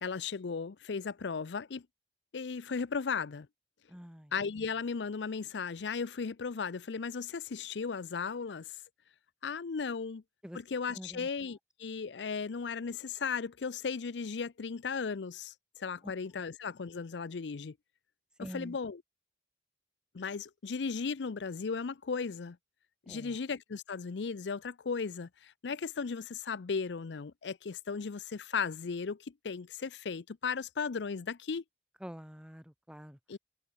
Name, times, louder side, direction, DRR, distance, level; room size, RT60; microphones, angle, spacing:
voice 1, 0.0-1.8 2.3-3.5 4.3-8.8 9.4-10.2 10.5-15.5 15.8-17.7 18.4-19.0 20.1-22.6 23.1-31.6 33.3-33.4, left 5 dB, 90° left, 0.6 m, -36 dB
voice 2, 3.9-4.3 10.4-10.6 10.9-11.3 16.0-16.1 18.4-18.8 23.1-23.4 32.0-33.4, equal, 5° right, 1.2 m, -46 dB
head